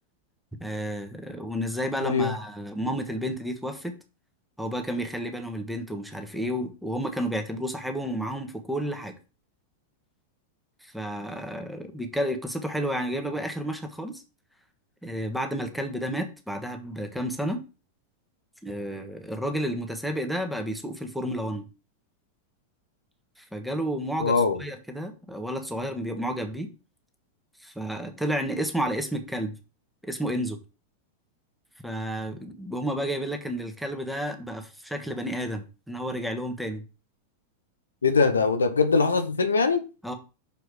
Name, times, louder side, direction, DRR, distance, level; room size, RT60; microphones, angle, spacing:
voice 1, 0.6-3.9 4.6-9.1 10.8-14.2 15.0-17.6 18.6-21.6 23.4-26.7 27.6-29.5 30.0-30.6 31.8-36.8 40.0-40.1, equal, ahead, 1.4 m, -31 dB
voice 2, 2.0-2.4 24.2-24.6 38.0-39.9, left 4 dB, 70° left, 0.8 m, -22 dB
6.8 x 4.7 x 4.8 m
figure-of-eight pair, 90°, 0 cm